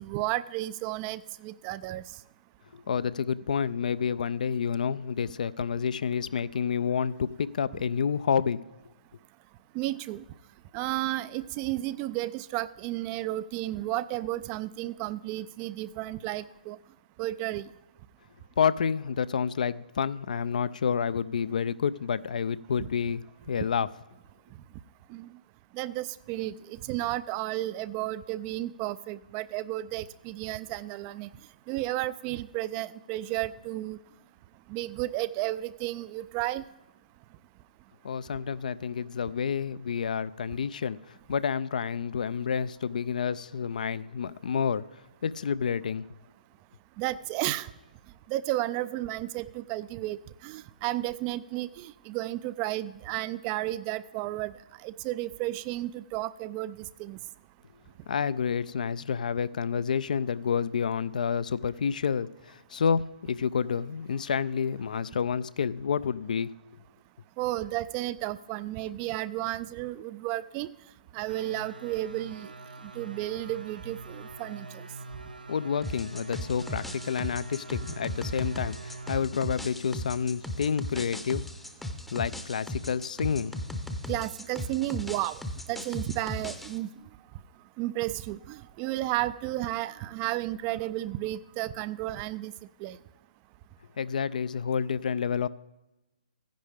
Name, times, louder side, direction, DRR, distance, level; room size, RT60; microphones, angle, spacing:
voice 1, 0.0-2.0 9.7-10.2 10.7-16.8 17.2-17.7 22.8-22.9 25.1-25.3 25.7-31.3 31.7-34.0 34.7-36.6 47.0-47.7 48.3-50.2 50.4-54.5 54.8-57.2 67.4-70.7 71.1-72.5 73.0-74.9 84.1-85.4 85.7-86.9 87.8-92.5 92.8-93.0, right 16 dB, 25° right, 16 dB, 0.3 m, -33 dB
voice 2, 2.7-8.6 18.6-23.9 38.0-44.8 45.2-46.1 58.1-66.5 75.5-81.4 82.1-83.5 94.0-95.5, left 7 dB, 60° left, 17 dB, 0.4 m, -29 dB
sound 1, 71.3-79.2, right 2 dB, 75° right, 0.6 m, -44 dB
sound 2, 75.8-86.8, left 1 dB, 5° left, 0.7 m, -37 dB
14.5 x 10.5 x 3.4 m, 1.0 s
figure-of-eight pair, 130°, 5 cm